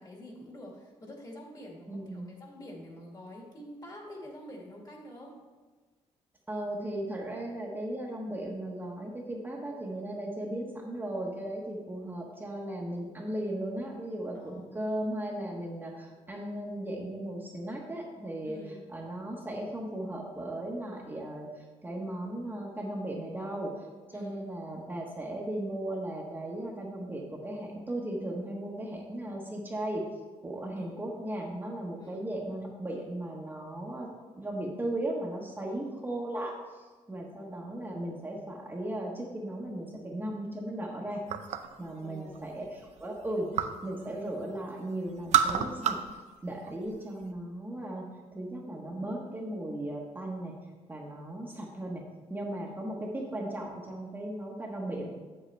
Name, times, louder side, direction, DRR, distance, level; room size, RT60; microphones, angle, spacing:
voice 1, 0.0-5.4 14.4-14.8 18.4-18.8 24.1-24.5 30.8-31.0 32.0-32.3 35.7-35.8 42.0-42.5, left 1 dB, 35° left, -1 dB, 1.9 m, -47 dB
voice 2, 1.9-2.3 6.5-30.1 30.4-34.1 34.4-41.2 41.8-43.5 43.8-48.0 48.3-50.5 50.9-52.0 52.3-55.1, right 1 dB, 15° right, -2 dB, 1.1 m, -36 dB
sound 1, 41.3-41.8 42.2-43.9 44.2-44.8 45.1-46.2 46.5-47.3, right 9 dB, 75° right, 0.5 m, -30 dB
8.0 x 7.6 x 3.3 m, 1.3 s
cardioid pair, 120°, 12 cm